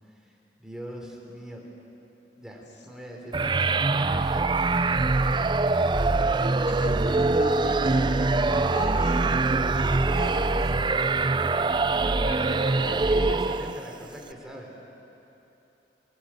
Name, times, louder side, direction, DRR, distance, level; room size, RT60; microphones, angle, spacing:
voice 1, 0.0-1.6 2.4-4.6 5.4-5.9 12.9-14.7, equal, 5° right, -1 dB, 3.7 m, -42 dB
sound 1, 3.3-13.9, right 3 dB, 25° right, 0.5 m, -23 dB
voice 2, 6.7-9.4 10.1-10.7 11.3-11.4 11.9-13.6, left 1 dB, 80° left, 1 dB, 2.8 m, -39 dB
Wind instrument woodwind instrument, 7.8-11.8, equal, 25° left, 1.0 m, -40 dB
22.5 x 22.5 x 9.0 m, 3.0 s
head